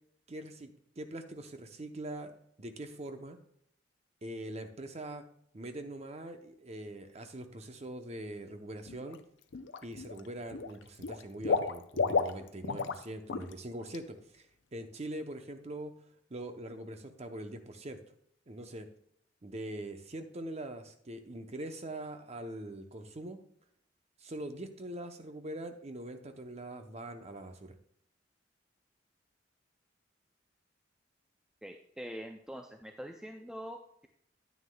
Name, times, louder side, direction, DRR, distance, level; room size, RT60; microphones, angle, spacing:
voice 1, 0.3-2.3 2.6-3.4 4.2-5.2 5.5-9.2 9.8-14.5 14.7-15.9 16.3-18.0 18.5-18.9 19.4-23.4 24.2-27.8, right 1 dB, 35° right, 7 dB, 0.8 m, -43 dB
Water / Liquid, 8.9-9.2 9.5-10.2 10.5-13.0 13.3-13.5 13.9-14.0, left 5 dB, 75° left, 0.5 m, -32 dB
voice 2, 31.6-34.1, equal, 5° right, 4 dB, 0.4 m, -44 dB
9.5 x 9.4 x 2.3 m, 0.70 s
head